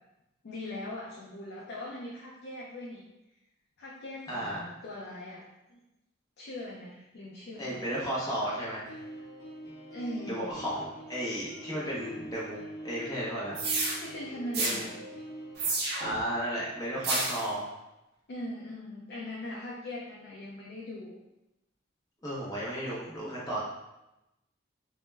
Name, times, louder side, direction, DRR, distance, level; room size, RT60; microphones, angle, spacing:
voice 1, 0.4-3.0 3.8-5.8 6.4-7.8 9.9-10.6 14.0-14.9 18.3-21.2, left 1 dB, 55° left, -4 dB, 0.4 m, -40 dB
voice 2, 4.3-4.6 7.6-9.0 10.2-12.6 12.8-13.6 14.6-14.9 16.0-17.7 22.2-23.6, equal, 20° left, -7 dB, 0.6 m, -34 dB
sound 1, 8.9-15.6, equal, 15° right, 0.7 m, -45 dB
sound 2, 13.5-14.0 14.5-14.8 15.6-16.2 17.0-17.4, right 3 dB, 55° right, 0.5 m, -29 dB
2.1 x 2.0 x 3.2 m, 0.93 s
head